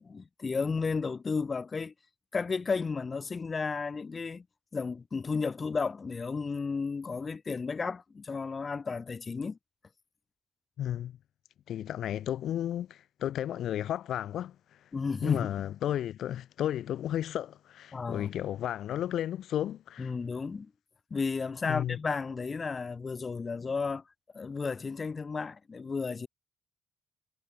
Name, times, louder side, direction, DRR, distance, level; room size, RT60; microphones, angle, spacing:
voice 1, 0.0-1.9 2.3-4.4 4.7-9.6 14.9-15.5 17.9-18.3 20.0-20.7 21.1-24.0 24.3-26.3, left 4 dB, 35° left, 1.7 m, -33 dB
voice 2, 10.8-11.2 11.7-14.5 15.2-20.1 21.6-22.0, left 11 dB, 75° left, 1.1 m, -33 dB
cardioid pair, 90°, 0 cm